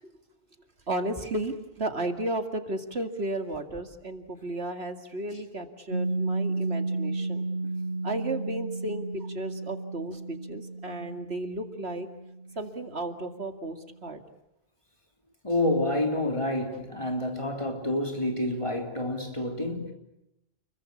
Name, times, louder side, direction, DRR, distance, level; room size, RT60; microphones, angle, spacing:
voice 1, 0.9-7.5 8.0-12.1 12.6-14.2 16.7-16.8, right 2 dB, 85° right, 2.6 m, -34 dB
Piano, 5.9-13.2, right 2 dB, 65° right, 7.2 m, -33 dB
voice 2, 15.4-19.9, left 1 dB, 30° left, 3.8 m, -28 dB
30.0 x 22.5 x 8.5 m
omnidirectional pair, 1.1 m